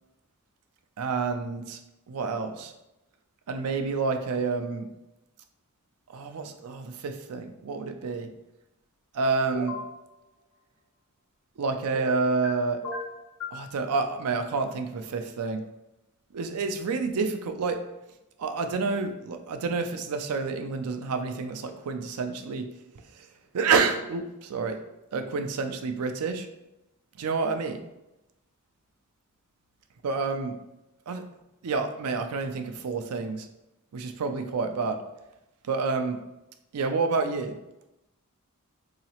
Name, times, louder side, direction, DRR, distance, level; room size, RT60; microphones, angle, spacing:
voice 1, 1.0-1.8 2.1-2.7 3.5-4.9 6.1-8.3 9.1-9.8 11.6-12.8 13.5-15.6 16.3-17.8 18.4-22.7 23.2-23.3 23.5-24.8 25.1-26.5 27.2-27.8 30.0-30.6 31.1-31.2 31.6-33.5 33.9-35.0 35.6-36.2 36.7-37.6, right 4 dB, 85° right, 7 dB, 0.4 m, -29 dB
sound 1, 9.5-9.9 11.9-12.5 12.8-13.6, left 2 dB, 70° left, 0.8 m, -35 dB
3.9 x 2.9 x 2.9 m, 0.94 s
head